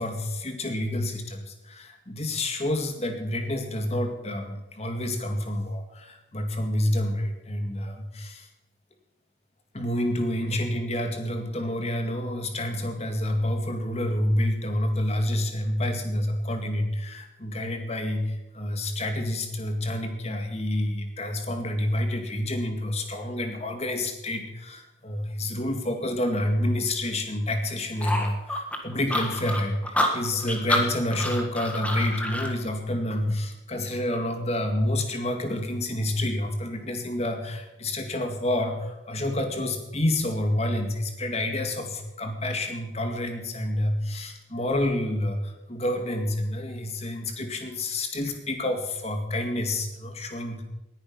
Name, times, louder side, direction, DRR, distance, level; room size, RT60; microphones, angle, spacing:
voice 1, 0.0-8.5 9.7-50.6, left 1 dB, 35° left, 5 dB, 2.1 m, -28 dB
sound 1, 28.0-32.5, left 1 dB, 5° left, 1.7 m, -28 dB
19.5 x 9.9 x 5.7 m, 0.95 s
head